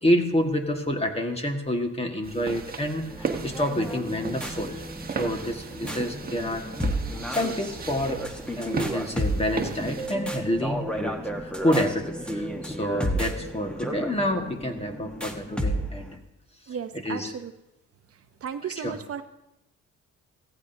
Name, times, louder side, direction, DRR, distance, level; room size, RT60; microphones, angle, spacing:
voice 1, 0.0-4.8 5.2-6.7 7.3-8.3 8.6-16.2 16.7-17.3 18.6-19.0, equal, 20° left, 4 dB, 1.7 m, -28 dB
sound 1, 2.2-10.1, right 5 dB, 30° right, 1.3 m, -36 dB
sound 2, 3.1-16.2, equal, 5° left, 1.3 m, -33 dB
voice 2, 16.7-17.5 18.4-19.2, right 7 dB, 50° right, 9 dB, 0.7 m, -34 dB
16.0 x 14.5 x 2.8 m, 0.92 s
cardioid pair, 90°, 30 cm